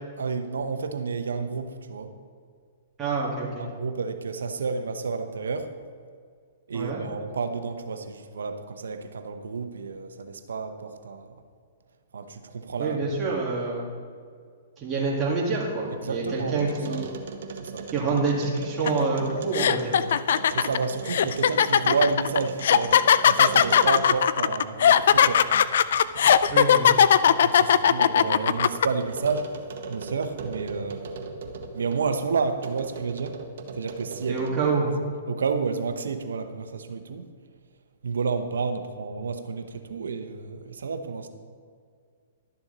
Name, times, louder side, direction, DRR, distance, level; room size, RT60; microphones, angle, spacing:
voice 1, 0.2-2.1 3.6-5.7 6.7-11.3 12.1-13.2 16.0-17.0 17.6-17.9 20.5-23.0 23.2-25.5 27.4-29.6 29.9-31.3 31.7-33.4 33.8-34.4 34.8-34.9 35.3-37.2 38.0-41.3, right 4 dB, 85° right, 9 dB, 0.8 m, -30 dB
voice 2, 3.0-3.6 6.7-7.0 12.8-13.9 14.8-17.1 17.9-20.0 26.5-26.9 34.3-34.9, right 4 dB, 20° right, -6 dB, 2.2 m, -27 dB
sound 1, 15.4-24.4 24.8-32.1 32.6-34.7, right 4 dB, 65° right, 1.1 m, -39 dB
sound 2, 18.9-19.0 19.5-28.9, left 8 dB, 70° left, 0.3 m, -18 dB
12.0 x 7.0 x 4.0 m, 2.1 s
hypercardioid pair, 135°, 0 cm